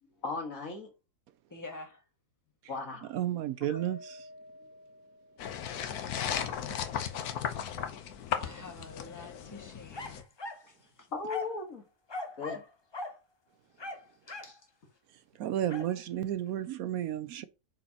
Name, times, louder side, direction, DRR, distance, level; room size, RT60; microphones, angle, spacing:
voice 1, 0.0-0.9 2.7-3.1 3.7-3.8 4.6-4.7 11.1-11.9 12.3-12.6, left 3 dB, 60° left, 2.0 m, -38 dB
voice 2, 1.5-2.0 6.1-6.8 8.4-10.3 10.6-11.1 14.3-14.6, left 2 dB, 15° left, 1.2 m, -48 dB
voice 3, 3.1-4.3 15.1-17.4, right 11 dB, 75° right, 1.0 m, -33 dB
Mallet percussion, 3.8-6.0, left 2 dB, 10° right, 1.8 m, -52 dB
sound 1, 5.4-10.2, left 9 dB, 75° left, 1.3 m, -36 dB
sound 2, 9.9-10.7 11.3-11.6 12.1-12.7 12.9-13.2 13.8-14.6 15.7-15.9, left 3 dB, 35° left, 0.4 m, -40 dB
7.7 x 4.6 x 2.9 m
omnidirectional pair, 1.6 m